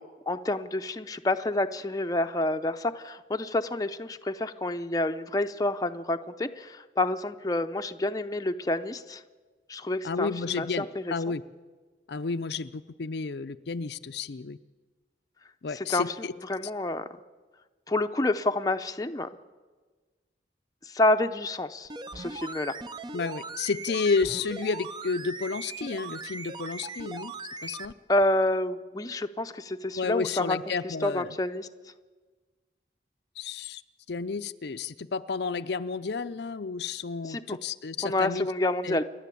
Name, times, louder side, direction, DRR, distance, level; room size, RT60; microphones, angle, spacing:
voice 1, 0.0-9.2 9.7-11.1 15.7-17.1 17.9-19.3 20.9-21.9 22.1-22.7 28.1-30.6 30.8-31.7 37.3-37.4 38.0-39.0, left 2 dB, 20° left, 7 dB, 0.6 m, -28 dB
voice 2, 10.0-11.4 12.1-14.6 15.6-16.3 23.1-27.3 27.6-27.9 30.0-31.4 33.4-33.8 34.1-38.5 38.8-39.0, left 4 dB, 60° left, 10 dB, 0.5 m, -31 dB
sound 1, 21.9-27.9 28.2-28.3, right 3 dB, 25° right, 0.5 m, -39 dB
29.0 x 11.0 x 8.4 m, 1.4 s
head